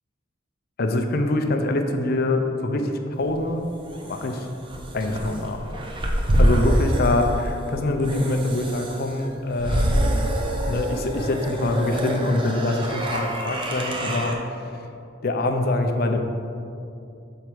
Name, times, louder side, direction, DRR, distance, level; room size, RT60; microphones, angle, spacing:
voice 1, 0.8-3.7 4.0-4.5 4.9-5.7 6.4-10.2 10.7-14.4 15.2-16.2, left 2 dB, 50° left, 5 dB, 0.6 m, -24 dB
sound 1, 3.3-14.3, right 1 dB, 25° right, 0.6 m, -26 dB
6.7 x 4.8 x 4.5 m, 2.6 s
head